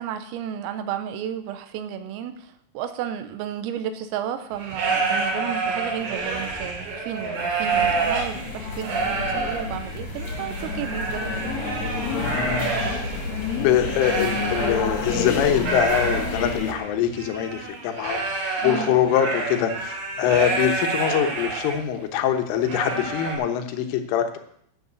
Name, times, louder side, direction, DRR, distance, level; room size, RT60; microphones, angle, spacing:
voice 1, 0.0-11.6 18.6-19.0, right 9 dB, 90° right, 10 dB, 3.7 m, -33 dB
sound 1, 4.5-15.1 15.4-21.8 22.2-22.3 22.6-23.4, right 3 dB, 60° right, 5.2 m, -28 dB
sound 2, 7.7-16.7, left 4 dB, 45° left, 2.5 m, -29 dB
voice 2, 13.6-18.2 18.6-24.4, left 9 dB, 75° left, 7 dB, 3.5 m, -23 dB
12.5 x 7.2 x 8.4 m, 0.68 s
omnidirectional pair, 6.0 m